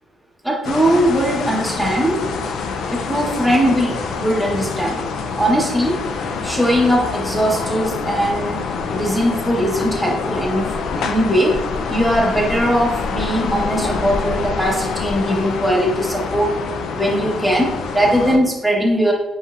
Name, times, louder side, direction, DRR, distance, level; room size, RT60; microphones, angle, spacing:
voice 1, 0.4-2.2 2.9-5.0 5.4-6.0 6.4-8.6 8.9-11.6 11.9-16.5 16.9-19.1, equal, 5° right, -2 dB, 1.1 m, -19 dB
sound 1, 0.6-18.4, left 4 dB, 75° left, 0.4 m, -26 dB
5.3 x 3.3 x 2.4 m, 0.96 s
cardioid pair, 90°, 0 cm